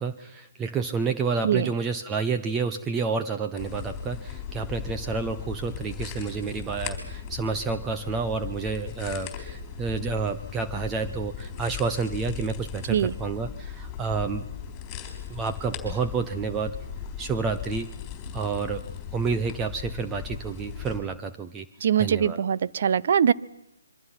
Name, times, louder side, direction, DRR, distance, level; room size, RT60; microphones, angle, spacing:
voice 1, 0.0-14.4 15.3-16.8 17.2-17.9 18.3-18.8 19.1-21.7 22.0-22.4, right 5 dB, 15° right, 7 dB, 0.7 m, -29 dB
sound 1, 3.6-21.0, left 7 dB, 20° left, 4.2 m, -37 dB
voice 2, 21.8-23.3, right 8 dB, 45° right, 17 dB, 0.7 m, -22 dB
26.5 x 23.5 x 5.8 m, 0.89 s
figure-of-eight pair, 150°, 0 cm